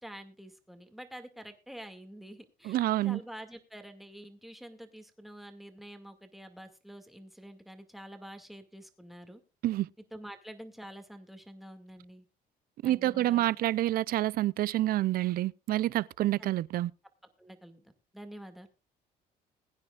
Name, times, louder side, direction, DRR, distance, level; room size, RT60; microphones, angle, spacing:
voice 1, 0.0-9.4 10.1-12.2 12.8-13.6 16.4-16.5 17.4-18.7, equal, ahead, 2.1 m, -48 dB
voice 2, 2.6-3.2 9.6-9.9 12.8-16.9, right 14 dB, 60° right, 0.5 m, -28 dB
21.5 x 9.7 x 2.4 m
cardioid pair, 110°, 17 cm